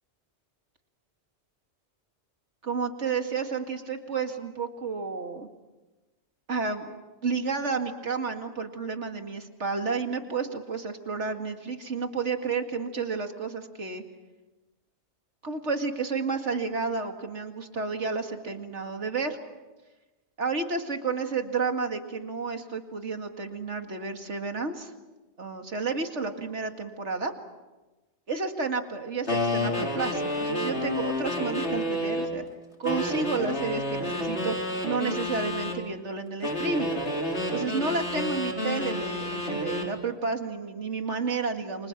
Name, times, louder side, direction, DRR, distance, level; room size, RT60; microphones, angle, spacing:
voice 1, 2.6-5.5 6.5-7.0 7.2-14.0 15.4-19.4 20.4-24.9 25.4-27.3 28.3-32.4 32.8-34.5 34.8-36.9 37.5-41.9, right 4 dB, 80° right, 5 dB, 2.4 m, -31 dB
sound 1, 29.3-32.3 32.8-35.8 36.4-39.9, left 1 dB, 70° left, 4.2 m, -30 dB
29.5 x 25.5 x 6.1 m, 1.1 s
omnidirectional pair, 1.2 m